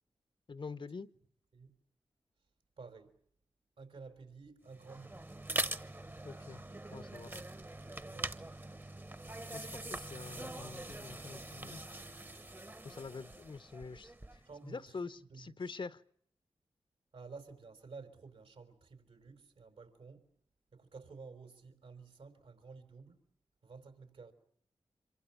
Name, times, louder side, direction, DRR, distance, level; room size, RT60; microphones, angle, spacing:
voice 1, 0.5-1.1 6.2-6.6 6.9-7.4 9.5-11.8 12.8-16.0, left 4 dB, 55° left, 1.0 m, -46 dB
voice 2, 2.8-3.2 3.8-5.3 8.1-8.5 14.4-15.5 17.1-20.3 20.7-23.2 23.6-24.3, right 4 dB, 80° right, 4.8 m, -52 dB
sound 1, 4.7-14.5, right 2 dB, 20° right, 1.1 m, -43 dB
26.0 x 23.5 x 7.3 m
cardioid pair, 50°, 10 cm